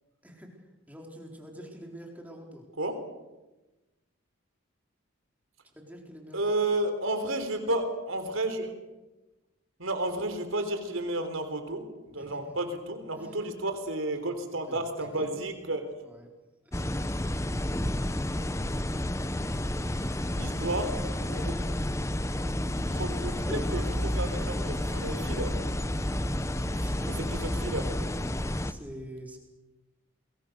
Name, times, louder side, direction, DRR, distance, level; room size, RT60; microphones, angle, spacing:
voice 1, 0.2-2.6 5.6-6.4 12.2-12.4 13.2-13.6 14.2-15.1 16.0-16.3 16.6-17.3 26.6-27.2 28.6-29.4, equal, 5° right, 1 dB, 4.3 m, -46 dB
voice 2, 6.3-8.7 9.8-15.8 20.4-21.6 22.9-25.6 27.4-28.0, right 2 dB, 75° right, 7 dB, 3.8 m, -32 dB
sound 1, 16.7-28.7, left 1 dB, 15° left, 0.8 m, -30 dB
29.5 x 22.0 x 6.7 m, 1.1 s
head